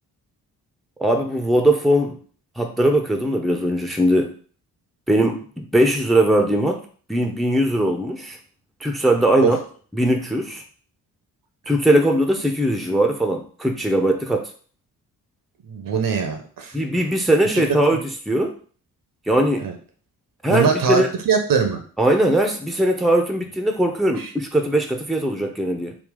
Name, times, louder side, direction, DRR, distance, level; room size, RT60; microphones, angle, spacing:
voice 1, 1.0-2.2 2.6-4.3 5.1-6.8 7.1-8.4 8.8-9.6 9.9-10.6 11.7-14.4 16.7-18.0 18.3-18.5 19.3-19.7 20.4-21.1 22.0-26.0, right 1 dB, ahead, 4 dB, 0.7 m, -20 dB
voice 2, 15.6-16.8 17.5-17.6 19.6-19.7 20.5-21.8 24.2-24.3, right 6 dB, 50° right, 6 dB, 0.8 m, -22 dB
3.5 x 2.3 x 3.7 m, 0.43 s
hypercardioid pair, 40°, 42 cm